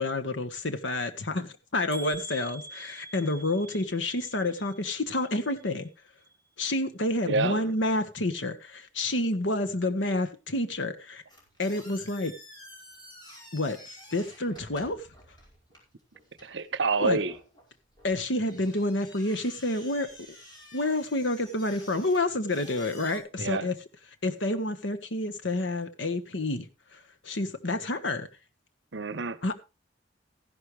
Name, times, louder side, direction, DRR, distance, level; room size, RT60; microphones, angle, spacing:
voice 1, 0.0-5.9 6.6-11.2 11.6-12.3 13.5-15.1 17.0-17.2 18.0-20.1 20.7-23.7 24.2-28.3 29.4-29.5, left 2 dB, 75° left, 1.5 m, -29 dB
sound 1, 1.9-5.9 6.2-6.8 7.3-7.4 7.7-7.8, right 2 dB, 15° right, 3.2 m, -46 dB
voice 2, 7.3-7.7 16.4-17.3 23.4-23.7 28.9-29.4, right 4 dB, 65° right, 0.9 m, -28 dB
sound 2, 11.3-23.2, equal, 25° left, 5.4 m, -51 dB
15.0 x 11.0 x 3.3 m
head